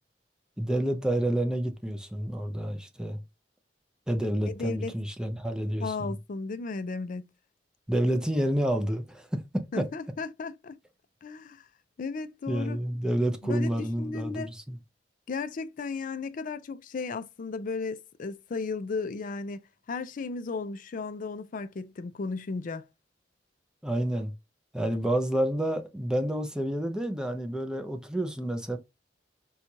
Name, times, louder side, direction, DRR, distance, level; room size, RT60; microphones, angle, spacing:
voice 1, 0.6-3.2 4.1-6.2 7.9-9.8 12.5-14.8 23.8-24.3 24.7-28.8, right 1 dB, 5° right, 0.5 m, -29 dB
voice 2, 4.5-4.9 5.8-7.2 9.7-10.8 11.2-11.6 12.0-12.8 13.4-14.5 15.3-19.6 19.9-22.9, left 4 dB, 50° left, 0.4 m, -35 dB
4.4 x 2.3 x 2.7 m
head